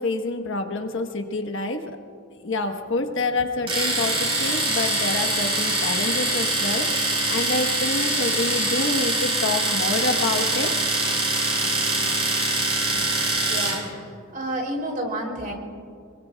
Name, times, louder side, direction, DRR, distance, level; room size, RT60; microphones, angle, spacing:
voice 1, 0.0-1.8 2.4-10.7, left 2 dB, 65° left, 5 dB, 1.2 m, -27 dB
Domestic sounds home sounds, 3.7-13.8, right 2 dB, 30° right, 4.4 m, -24 dB
voice 2, 13.5-14.0 14.3-15.5, right 1 dB, 45° right, 0 dB, 3.1 m, -29 dB
26.5 x 22.5 x 2.3 m, 2.4 s
head